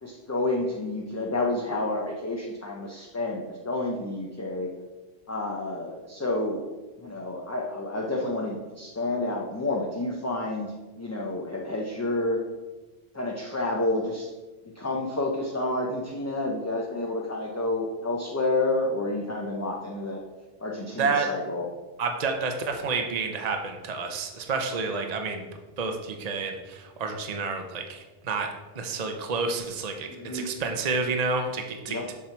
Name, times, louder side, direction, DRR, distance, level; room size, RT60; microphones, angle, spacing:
voice 1, 0.0-4.7 5.3-6.7 7.0-12.4 13.1-14.3 14.8-20.2 20.6-21.7 30.1-30.5 31.9-32.0, left 2 dB, 20° left, -1 dB, 0.6 m, -29 dB
voice 2, 22.0-25.4 25.8-28.5 28.8-32.1, right 4 dB, 40° right, 4 dB, 0.8 m, -29 dB
7.4 x 5.7 x 4.5 m, 1.2 s
omnidirectional pair, 1.1 m